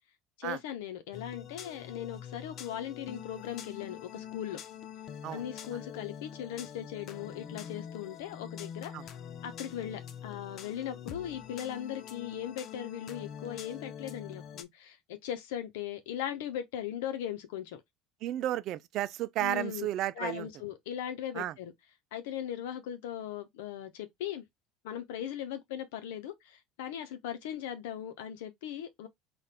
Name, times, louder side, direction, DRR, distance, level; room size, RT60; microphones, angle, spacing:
voice 1, 0.4-4.6 5.3-8.9 9.4-17.8 19.4-19.9 20.2-21.7 22.1-24.4 24.8-29.1, left 10 dB, 85° left, 0.8 m, -39 dB
sound 1, 1.1-14.6, left 8 dB, 50° left, 0.6 m, -45 dB
voice 2, 18.2-20.5 21.4-21.5, right 13 dB, 60° right, 0.4 m, -33 dB
4.2 x 2.5 x 3.3 m
supercardioid pair, 90°, 0 cm